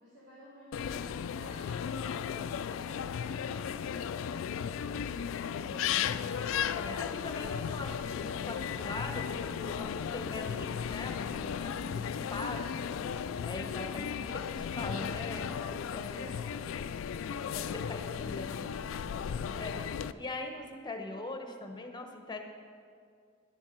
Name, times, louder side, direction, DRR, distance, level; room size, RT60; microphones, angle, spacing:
voice 1, 0.0-4.0 16.1-17.3, equal, 60° right, -8 dB, 2.6 m, -53 dB
sound 1, 0.7-20.1, left 7 dB, 80° left, 0.3 m, -35 dB
voice 2, 4.7-6.2 6.7-13.0 13.4-16.6 17.5-18.7 19.6-22.4, left 2 dB, 20° left, 4 dB, 1.0 m, -42 dB
11.0 x 7.2 x 6.7 m, 2.2 s
head